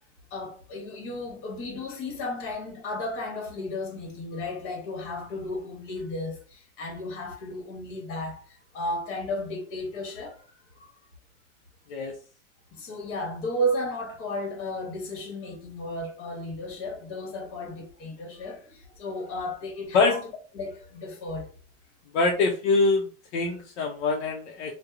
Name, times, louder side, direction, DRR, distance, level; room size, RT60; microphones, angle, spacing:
voice 1, 0.3-10.9 12.7-20.2 20.5-21.5, left 1 dB, 35° left, 1.1 m, -34 dB
voice 2, 22.1-23.1 23.3-24.7, left 3 dB, 65° left, 0.6 m, -24 dB
2.8 x 2.1 x 2.4 m
supercardioid pair, 145°, 38 cm